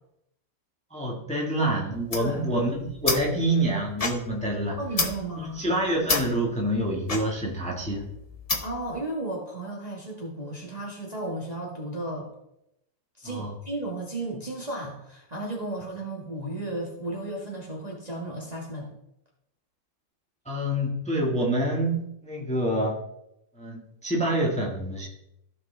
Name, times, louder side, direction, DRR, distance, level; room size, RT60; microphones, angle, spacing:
voice 1, 0.9-4.8 5.4-8.0 13.2-13.5 20.4-23.0 23.6-25.1, right 1 dB, 5° left, -2 dB, 1.5 m, -27 dB
sound 1, 1.9-8.9, left 3 dB, 35° left, 0.6 m, -32 dB
voice 2, 2.2-2.5 4.8-5.8 8.6-12.3 13.2-18.9, right 2 dB, 25° right, -3 dB, 1.5 m, -34 dB
15.0 x 5.3 x 3.4 m, 0.82 s
omnidirectional pair, 2.0 m